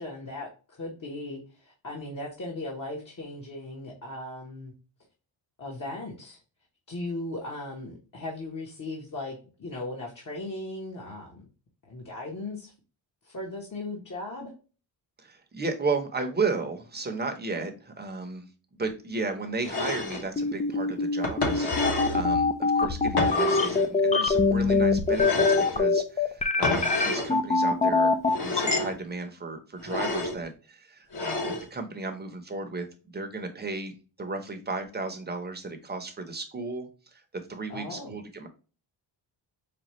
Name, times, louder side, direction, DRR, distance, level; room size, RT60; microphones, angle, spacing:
voice 1, 0.0-4.7 5.6-6.4 6.9-11.5 11.8-12.7 13.2-14.5 37.7-38.1, left 2 dB, 40° left, -1 dB, 1.1 m, -37 dB
voice 2, 15.2-18.5 18.8-37.2 37.5-38.5, right 3 dB, 20° right, 5 dB, 0.8 m, -34 dB
sound 1, 19.6-20.3 21.2-22.2 23.2-23.9 25.1-25.8 26.6-27.3 28.3-29.0 29.8-30.4 31.1-31.7, left 3 dB, 55° left, 1.3 m, -29 dB
sound 2, 20.4-28.8, left 3 dB, 15° left, 0.4 m, -23 dB
5.1 x 2.3 x 3.0 m, 0.34 s
wide cardioid pair, 110°, 45 cm